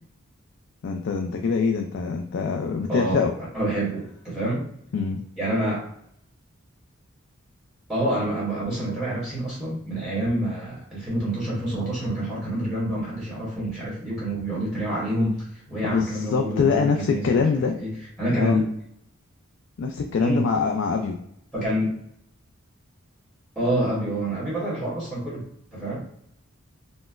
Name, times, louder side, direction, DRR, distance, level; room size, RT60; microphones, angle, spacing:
voice 1, 0.8-3.3 4.9-5.2 15.8-17.7 18.3-18.6 19.8-21.2, left 5 dB, 60° left, 3 dB, 0.3 m, -24 dB
voice 2, 2.9-3.3 3.5-4.6 5.4-5.9 7.9-17.4 17.8-17.9 18.2-18.7 20.2-20.5 21.5-21.9 23.5-25.4 25.7-26.1, right 1 dB, ahead, -7 dB, 1.1 m, -27 dB
4.0 x 2.0 x 2.3 m, 0.73 s
head